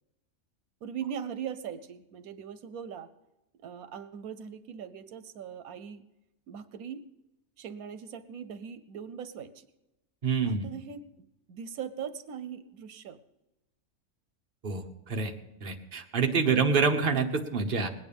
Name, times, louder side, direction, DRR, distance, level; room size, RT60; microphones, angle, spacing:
voice 1, 0.8-3.1 3.6-6.0 6.5-7.0 7.6-9.7 10.4-13.2 16.4-16.6, right 8 dB, 85° right, 12 dB, 1.2 m, -40 dB
voice 2, 10.2-10.7 14.6-15.3 15.6-17.9, right 5 dB, 40° right, 3 dB, 1.3 m, -27 dB
20.0 x 9.4 x 5.3 m, 0.95 s
omnidirectional pair, 1.5 m